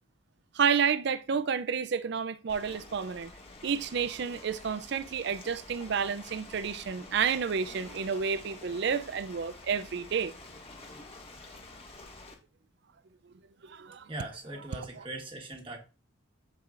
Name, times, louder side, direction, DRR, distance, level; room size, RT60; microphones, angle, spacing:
voice 1, 0.5-3.3 3.6-10.3 13.6-14.1 14.8-15.0, right 6 dB, 55° right, 0.4 m, -30 dB
Ocean, 2.5-12.3, left 2 dB, 30° left, 1.5 m, -48 dB
voice 2, 14.1-15.8, right 1 dB, 25° right, 1.3 m, -40 dB
13.5 x 4.7 x 2.5 m
head